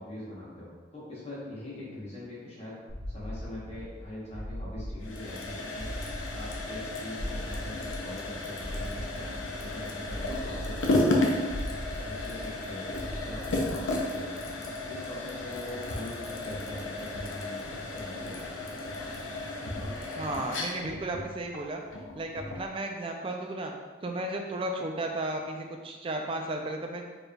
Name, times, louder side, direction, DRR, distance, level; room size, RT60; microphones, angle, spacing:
voice 1, 0.0-2.8 3.1-5.9 6.3-11.3 12.1-12.9 13.2-14.4 14.8-17.5 17.9-18.5, left 1 dB, 30° left, -7 dB, 1.0 m, -42 dB
sound 1, 2.9-14.2, equal, 75° right, 0.9 m, -40 dB
sound 2, 5.0-22.7, left 2 dB, 75° left, 0.6 m, -33 dB
voice 2, 20.2-21.8 22.2-23.7 24.0-27.0, right 1 dB, 25° right, 2 dB, 0.3 m, -34 dB
4.4 x 3.2 x 2.3 m, 1.4 s
head